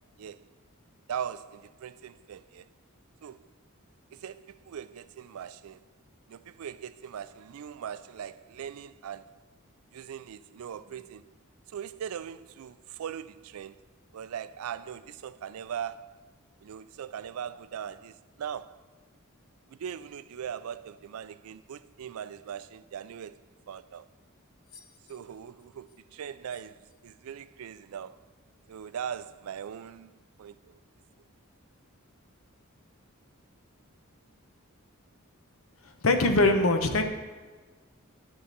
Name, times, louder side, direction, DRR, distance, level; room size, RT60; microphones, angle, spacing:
voice 1, 0.2-0.5 1.1-2.7 3.2-3.5 4.1-5.8 6.3-9.4 9.9-11.3 11.7-13.8 14.1-16.2 16.6-18.8 19.7-23.4 23.7-24.1 25.1-28.2 28.7-30.1 30.4-30.8, right 8 dB, 80° right, 0.4 m, -40 dB
voice 2, 35.8-37.0, left 2 dB, 70° left, 0.9 m, -23 dB
11.0 x 3.8 x 6.7 m
head